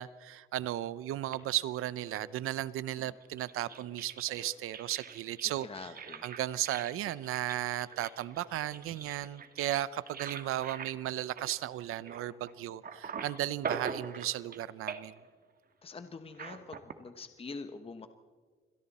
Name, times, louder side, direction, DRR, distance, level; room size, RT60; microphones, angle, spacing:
voice 1, 0.0-5.9 6.2-15.2, right 13 dB, 85° right, 0.7 m, -35 dB
sound 1, 1.3-2.6 3.2-12.5 12.8-14.6 14.9-15.3 16.3-16.9, right 6 dB, 45° right, 1.6 m, -43 dB
voice 2, 5.6-6.3 15.8-18.1, left 4 dB, 25° left, 1.1 m, -45 dB
28.5 x 22.0 x 4.2 m
cardioid pair, 110°, 21 cm